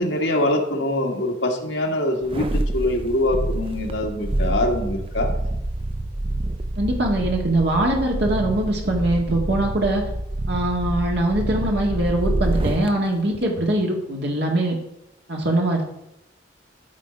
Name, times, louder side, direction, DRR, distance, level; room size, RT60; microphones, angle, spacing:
voice 1, 0.0-5.3, left 1 dB, 70° left, 2 dB, 1.5 m, -23 dB
sound 1, 2.2-12.9 13.3-13.4, right 1 dB, 30° right, 0.5 m, -27 dB
voice 2, 6.8-10.0 10.5-14.8 15.3-15.8, right 1 dB, 65° right, 0 dB, 1.9 m, -22 dB
12.5 x 4.2 x 5.0 m, 0.82 s
head